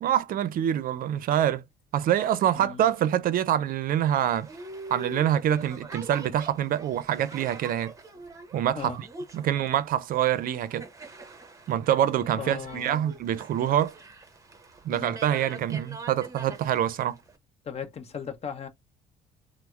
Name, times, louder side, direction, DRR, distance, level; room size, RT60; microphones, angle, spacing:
voice 1, 0.0-1.6 1.9-4.5 4.9-7.9 8.5-8.9 9.3-10.8 11.7-13.9 14.8-17.2, right 10 dB, 55° right, 0.5 m, -25 dB
voice 2, 2.5-2.9 8.7-9.0 12.3-13.0 14.9-15.2 17.6-18.7, left 6 dB, 40° left, 0.8 m, -37 dB
Boat Water vehicle, 4.2-17.4, right 3 dB, 20° right, 0.8 m, -44 dB
4.1 x 2.0 x 2.4 m
cardioid pair, 110°, 17 cm